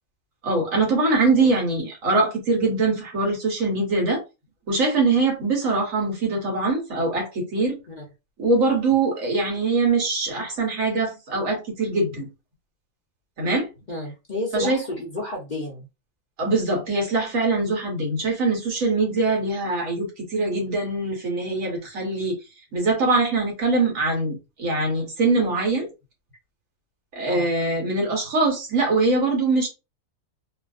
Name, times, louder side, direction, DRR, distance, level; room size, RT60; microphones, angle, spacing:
voice 1, 0.4-4.2 4.7-7.7 8.4-12.3 13.4-13.7 14.5-14.8 16.4-22.3 22.7-25.9 27.1-29.7, right 3 dB, 65° right, 1.5 m, -23 dB
voice 2, 13.9-15.9 27.3-27.5, left 1 dB, 40° left, 0.8 m, -31 dB
3.1 x 2.4 x 2.5 m
omnidirectional pair, 1.5 m